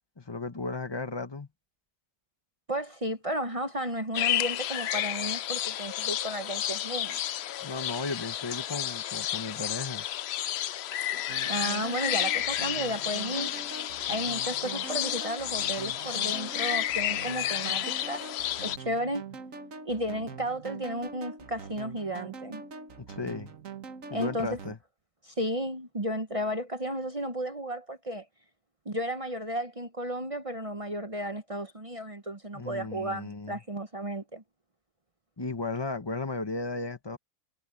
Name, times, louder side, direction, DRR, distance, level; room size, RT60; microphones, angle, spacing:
voice 1, 0.2-1.5 7.6-10.1 23.1-23.5 24.1-24.8 32.5-33.6 35.4-37.2, left 3 dB, 20° left, 1.4 m, -35 dB
voice 2, 2.7-7.2 11.4-13.5 14.1-18.2 18.6-19.2 19.9-22.6 24.1-24.6 25.2-28.3 28.9-34.4, equal, 30° right, 0.9 m, -33 dB
sound 1, 4.1-18.8, left 12 dB, 65° left, 0.7 m, -31 dB
sound 2, 11.3-24.8, right 5 dB, 70° right, 1.8 m, -44 dB
omnidirectional pair, 1.4 m